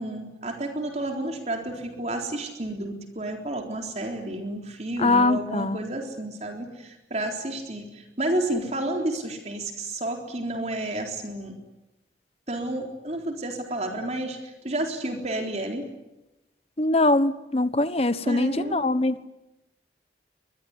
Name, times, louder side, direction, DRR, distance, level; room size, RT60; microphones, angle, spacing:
voice 1, 0.0-11.5 12.5-15.9 18.3-18.8, right 1 dB, 40° right, 3 dB, 3.9 m, -31 dB
voice 2, 5.0-5.8 16.8-19.1, left 2 dB, 35° left, 13 dB, 1.2 m, -22 dB
25.0 x 21.5 x 9.8 m, 0.96 s
head